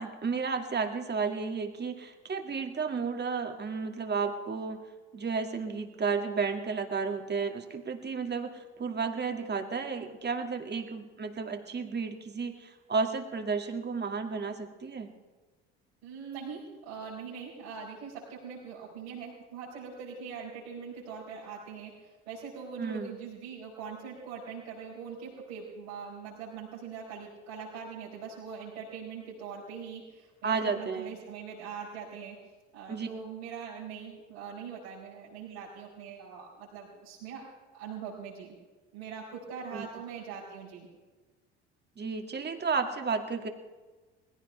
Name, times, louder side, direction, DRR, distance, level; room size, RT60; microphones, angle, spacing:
voice 1, 0.0-4.8 5.1-15.1 22.8-23.2 30.4-31.1 32.9-33.1 39.7-39.9 42.0-43.5, right 5 dB, 35° right, 5 dB, 2.4 m, -32 dB
voice 2, 16.0-32.4 32.7-37.4 37.7-38.6 38.9-40.9, right 6 dB, 80° right, -9 dB, 5.3 m, -42 dB
20.5 x 16.5 x 3.4 m, 1.3 s
hypercardioid pair, 60°, 32 cm